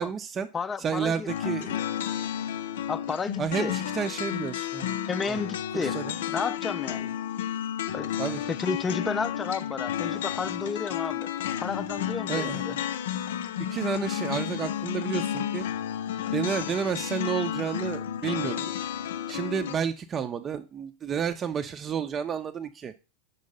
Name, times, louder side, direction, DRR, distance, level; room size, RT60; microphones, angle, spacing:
voice 1, 0.0-0.5 0.8-1.8 3.4-5.0 5.3-5.4 5.7-6.2 8.2-8.4 12.3-12.8 13.7-15.7 16.3-18.7 19.3-22.9, right 7 dB, 30° right, 0.6 m, -31 dB
voice 2, 0.5-1.3 2.9-3.7 5.1-6.0 6.3-7.1 7.9-8.1 8.5-11.3 11.6-12.8, left 5 dB, 25° left, 0.5 m, -32 dB
sound 1, 1.3-19.8, left 10 dB, 75° left, 0.5 m, -32 dB
5.4 x 4.6 x 5.3 m
hypercardioid pair, 90°, 0 cm